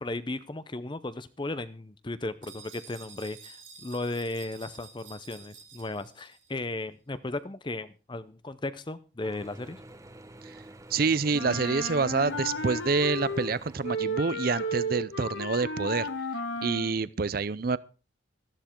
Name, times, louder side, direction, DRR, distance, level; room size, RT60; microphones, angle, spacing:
voice 1, 0.0-9.8, left 2 dB, 25° left, 0.6 m, -35 dB
sound 1, 2.4-6.6, right 6 dB, 75° right, 5.7 m, -50 dB
Mechanisms / Drill, 9.2-14.7, right 1 dB, 15° right, 0.9 m, -49 dB
voice 2, 10.9-16.1 16.6-17.8, right 4 dB, 50° right, 0.5 m, -27 dB
Wind instrument woodwind instrument, 11.3-13.5 13.8-16.9, equal, 70° left, 1.5 m, -33 dB
14.0 x 11.5 x 4.5 m
head